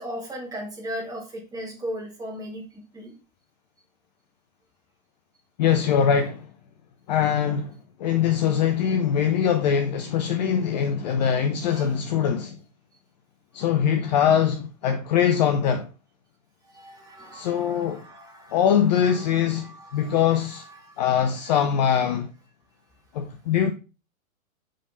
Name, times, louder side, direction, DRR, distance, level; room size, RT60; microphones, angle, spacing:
voice 1, 0.0-3.1 11.6-11.9 16.6-18.6 19.0-21.6, equal, 10° right, 2.2 m, -38 dB
voice 2, 5.6-6.4 7.1-7.7 8.0-12.6 13.5-15.9 17.3-18.0 18.5-19.6 19.9-20.6 21.0-22.3 23.1-23.7, left 8 dB, 30° left, 0.6 m, -22 dB
6.5 x 5.3 x 3.9 m
figure-of-eight pair, 115°, 42 cm